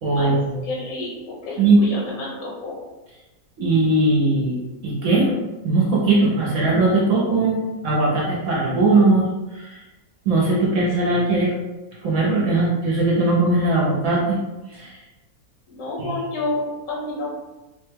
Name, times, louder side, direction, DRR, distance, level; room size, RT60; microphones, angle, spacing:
voice 1, 0.0-0.6 1.6-1.8 3.6-4.6 4.8-5.4 5.6-9.3 9.5-9.8 10.3-11.5 12.0-14.4 14.7-15.0 16.0-16.1, right 2 dB, 65° right, -4 dB, 0.9 m, -19 dB
voice 2, 0.6-2.8 15.7-17.3, left 2 dB, 70° left, -5 dB, 1.1 m, -29 dB
3.1 x 2.2 x 3.2 m, 1.1 s
omnidirectional pair, 1.7 m